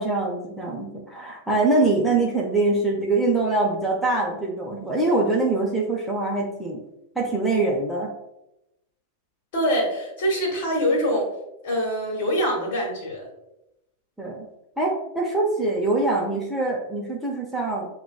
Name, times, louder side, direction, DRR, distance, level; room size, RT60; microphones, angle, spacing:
voice 1, 0.0-6.8 7.2-8.1 14.2-14.5 14.8-17.9, right 2 dB, ahead, -3 dB, 0.7 m, -24 dB
voice 2, 9.5-11.3 11.6-13.3, equal, 55° left, 0 dB, 1.4 m, -24 dB
6.9 x 2.3 x 2.2 m, 0.88 s
figure-of-eight pair, 90°, 0 cm